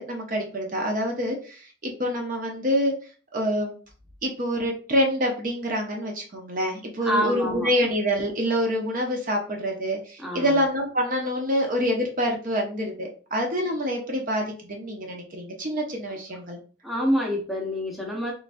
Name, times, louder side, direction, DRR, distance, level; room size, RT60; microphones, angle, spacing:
voice 1, 0.0-2.9 3.3-3.7 4.2-16.6, equal, 45° right, 1 dB, 0.7 m, -26 dB
voice 2, 7.0-7.7 10.2-10.6 16.1-16.2 16.8-18.3, equal, ahead, -2 dB, 0.7 m, -27 dB
3.8 x 3.1 x 2.5 m, 0.39 s
head